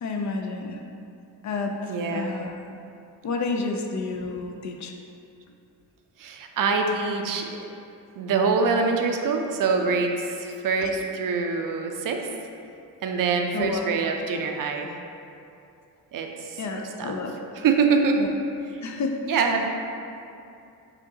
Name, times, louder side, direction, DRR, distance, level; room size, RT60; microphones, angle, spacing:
voice 1, 0.0-0.8 1.4-2.6 3.2-4.9 10.8-10.9 13.5-13.8 16.6-17.3 18.2-18.3 18.8-19.7, left 3 dB, 45° left, 3 dB, 0.4 m, -30 dB
voice 2, 1.9-2.3 6.2-7.6 8.2-12.3 13.0-14.9 16.1-16.6 17.0-17.2 17.5-18.2 18.8-18.9 19.3-19.7, right 4 dB, 55° right, 3 dB, 0.5 m, -25 dB
5.0 x 2.8 x 2.7 m, 2.6 s
cardioid pair, 70°, 41 cm